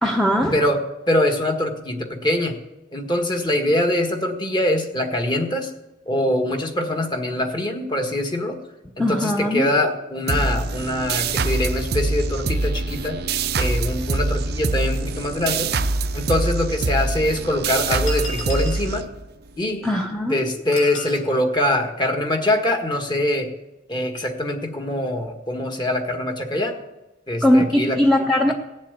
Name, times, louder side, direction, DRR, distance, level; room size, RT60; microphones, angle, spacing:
voice 1, 0.0-0.6 9.0-9.7 19.8-20.4 27.4-28.5, left 1 dB, 5° left, 2 dB, 0.9 m, -19 dB
voice 2, 1.1-2.5 2.9-5.7 6.0-8.6 9.0-13.2 13.5-15.7 16.1-19.0 19.6-19.9 20.3-23.5 23.9-26.7 27.3-28.0 28.5-28.6, left 1 dB, 25° left, 4 dB, 1.6 m, -23 dB
sound 1, 10.3-19.5, right 3 dB, 55° right, 0.7 m, -24 dB
sound 2, 16.1-16.2 17.1-17.2 18.1-18.9 20.7-21.3, equal, 80° left, 2.7 m, -34 dB
17.5 x 7.4 x 8.2 m, 1.0 s
head